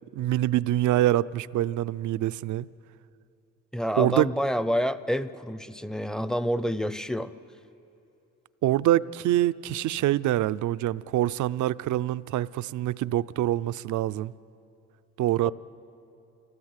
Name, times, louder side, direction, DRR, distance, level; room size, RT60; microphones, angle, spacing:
voice 1, 0.1-2.7 4.0-4.3 8.6-14.3 15.2-15.5, right 14 dB, 75° right, 0.5 m, -25 dB
voice 2, 3.7-7.3, equal, ahead, 0.6 m, -28 dB
26.5 x 17.0 x 8.1 m
cardioid pair, 90°, 30 cm